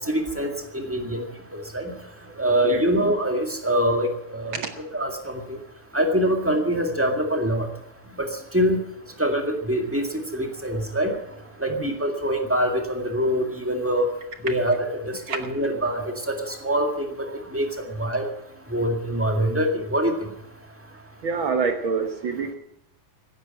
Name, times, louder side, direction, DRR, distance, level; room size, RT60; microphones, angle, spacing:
voice 1, 0.1-1.2 1.5-1.9 2.4-4.6 4.9-5.6 5.9-7.7 8.2-8.8 9.2-10.1 10.3-11.1 11.6-14.1 14.4-15.0 15.3-16.4 16.6-17.1 17.5-18.2 18.7-20.1, equal, 5° right, 3 dB, 1.1 m, -24 dB
voice 2, 21.2-22.5, right 5 dB, 60° right, 7 dB, 1.4 m, -26 dB
16.0 x 10.0 x 8.9 m, 0.83 s
omnidirectional pair, 3.6 m